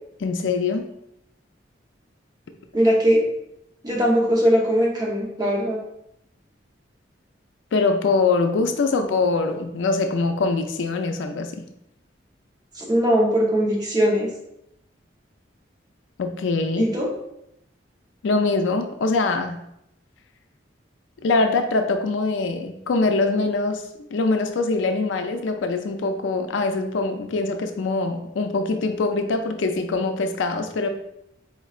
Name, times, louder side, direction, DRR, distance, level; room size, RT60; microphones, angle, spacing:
voice 1, 0.2-0.8 7.7-11.7 16.2-16.9 18.2-19.6 21.2-30.9, left 3 dB, 75° left, 6 dB, 0.4 m, -23 dB
voice 2, 2.7-3.2 3.8-5.8 12.8-14.3 16.8-17.1, equal, 20° right, -3 dB, 0.8 m, -20 dB
4.4 x 3.1 x 2.4 m, 0.80 s
head